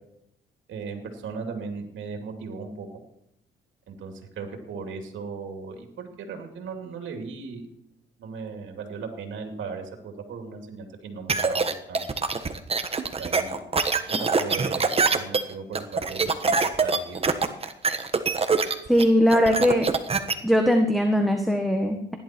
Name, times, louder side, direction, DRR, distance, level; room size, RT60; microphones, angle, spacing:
voice 1, 0.7-2.9 3.9-7.7 8.2-12.1 13.2-13.6 14.1-17.3, right 5 dB, 70° right, 4 dB, 2.8 m, -37 dB
sound 1, 11.3-20.3, right 4 dB, 30° right, 1.4 m, -24 dB
voice 2, 18.9-19.9 20.4-22.2, equal, ahead, 4 dB, 1.6 m, -20 dB
16.5 x 11.0 x 4.6 m, 0.77 s
cardioid pair, 90°, 20 cm